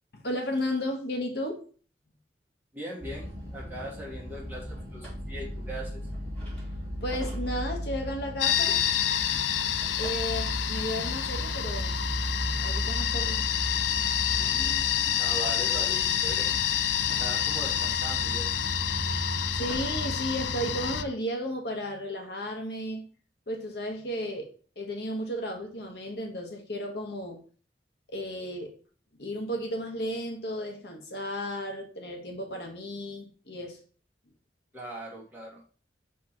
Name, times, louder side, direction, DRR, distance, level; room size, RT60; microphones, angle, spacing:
voice 1, 0.1-1.6 7.0-8.8 10.0-12.0 12.6-13.4 19.5-23.1 23.5-24.5 24.8-27.4 28.1-28.7 29.2-33.8, equal, 65° left, 2 dB, 1.2 m, -34 dB
voice 2, 2.7-6.0 14.3-16.5 17.2-18.5 34.7-35.6, right 1 dB, 10° right, -4 dB, 2.0 m, -40 dB
sound 1, 3.0-21.1, equal, 5° left, 3.0 m, -36 dB
sound 2, 8.4-21.0, left 10 dB, 80° left, 0.4 m, -28 dB
6.1 x 3.7 x 4.4 m, 0.41 s
head